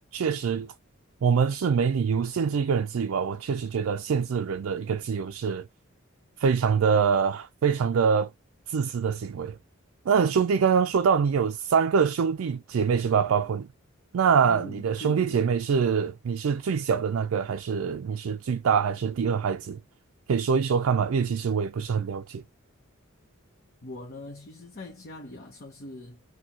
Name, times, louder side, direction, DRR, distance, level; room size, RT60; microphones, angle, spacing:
voice 1, 0.1-0.7 1.2-5.6 6.4-8.3 8.7-9.6 10.1-13.7 14.1-19.8 20.3-22.4, right 6 dB, 65° right, 0.3 m, -24 dB
voice 2, 14.4-15.5 23.8-26.2, left 2 dB, 45° left, 0.8 m, -42 dB
4.5 x 2.2 x 2.8 m
head